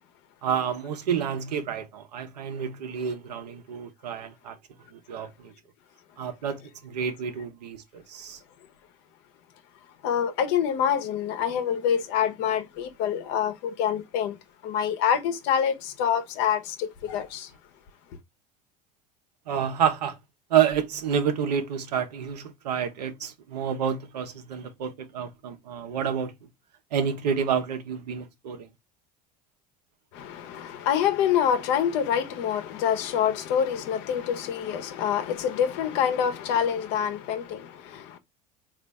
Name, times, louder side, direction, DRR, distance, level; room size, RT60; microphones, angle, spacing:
voice 1, 0.4-4.6 4.9-5.5 6.2-8.4 19.5-20.2 20.5-26.5 26.9-28.7, right 8 dB, 80° right, 0.9 m, -29 dB
voice 2, 10.0-14.4 14.6-17.5 30.1-38.2, left 8 dB, 60° left, 0.9 m, -26 dB
4.1 x 2.6 x 3.4 m
hypercardioid pair, 75°, 20 cm